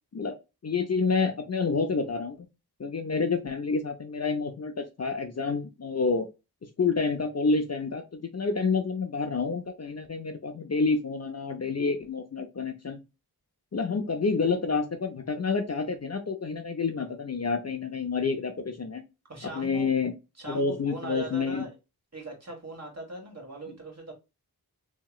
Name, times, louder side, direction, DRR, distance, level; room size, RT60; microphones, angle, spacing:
voice 1, 0.6-2.4 2.8-6.3 6.8-13.0 13.7-19.0 19.5-20.1 20.5-21.6, left 4 dB, 40° left, 0.5 m, -28 dB
voice 2, 19.3-19.9 20.4-21.7 22.1-24.1, right 2 dB, 40° right, 1.4 m, -40 dB
2.9 x 2.8 x 2.3 m
wide cardioid pair, 50°, 39 cm